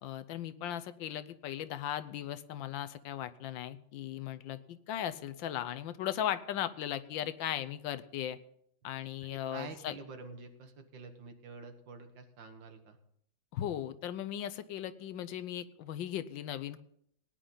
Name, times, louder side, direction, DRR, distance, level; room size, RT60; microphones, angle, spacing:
voice 1, 0.0-8.4 8.8-9.9 13.5-16.8, left 11 dB, 90° left, 12 dB, 1.5 m, -37 dB
voice 2, 9.2-13.0, right 4 dB, 80° right, 7 dB, 2.1 m, -48 dB
18.0 x 10.0 x 3.9 m, 0.69 s
omnidirectional pair, 2.0 m